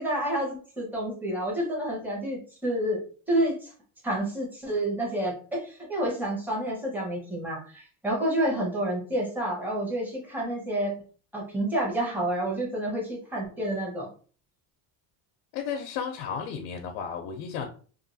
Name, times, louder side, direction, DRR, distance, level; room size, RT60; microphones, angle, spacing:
voice 1, 0.0-3.0 3.3-3.7 4.0-10.9 11.3-14.1, right 1 dB, 5° right, -4 dB, 1.0 m, -29 dB
voice 2, 15.5-17.7, left 7 dB, 85° left, 3 dB, 0.6 m, -33 dB
2.6 x 2.5 x 2.6 m, 0.41 s
cardioid pair, 130°, 46 cm